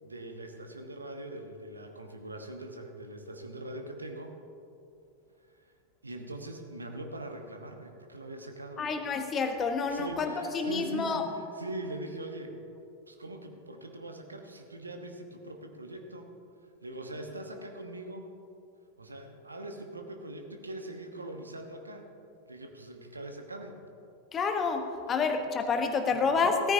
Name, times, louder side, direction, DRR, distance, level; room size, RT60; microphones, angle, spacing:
voice 1, 0.0-4.3 6.0-9.0 9.9-12.6 13.1-16.3 16.8-18.3 19.0-22.0 22.5-23.8 26.1-26.2, right 1 dB, 80° right, 4 dB, 1.2 m, -42 dB
voice 2, 8.8-11.2 24.3-26.7, left 4 dB, 25° left, 6 dB, 1.1 m, -28 dB
16.5 x 14.0 x 2.8 m, 2.6 s
figure-of-eight pair, 90°, 0 cm